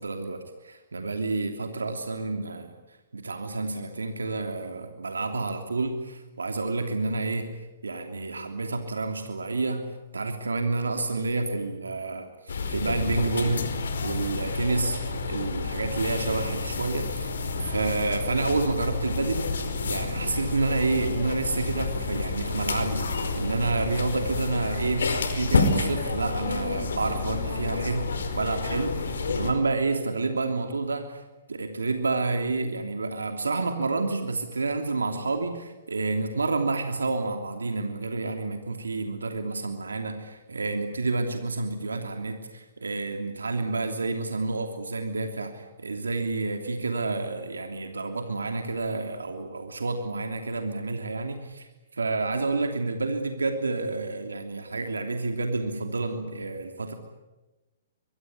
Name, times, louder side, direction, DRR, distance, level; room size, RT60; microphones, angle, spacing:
voice 1, 0.0-2.7 3.1-7.5 7.8-12.3 12.7-13.7 14.0-17.3 17.7-19.5 19.8-31.2 31.5-56.9, right 3 dB, 85° right, 5 dB, 3.0 m, -29 dB
sound 1, 12.5-29.5, left 4 dB, 75° left, 4.8 m, -29 dB
25.0 x 23.0 x 9.7 m, 1.1 s
hypercardioid pair, 125°, 0 cm